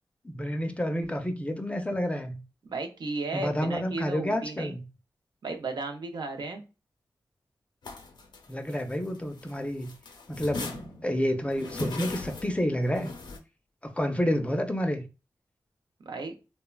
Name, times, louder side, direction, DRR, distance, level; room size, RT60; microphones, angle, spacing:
voice 1, 0.2-2.4 3.3-4.9 8.5-9.9 10.3-13.1 13.8-15.0, equal, 15° left, 0.5 m, -29 dB
voice 2, 2.6-4.8 5.4-6.6 16.0-16.3, right 3 dB, 75° right, 0.5 m, -34 dB
sound 1, 7.8-9.5 9.8-13.4, left 2 dB, 90° left, 0.5 m, -39 dB
3.2 x 2.1 x 2.2 m
wide cardioid pair, 70°, 7 cm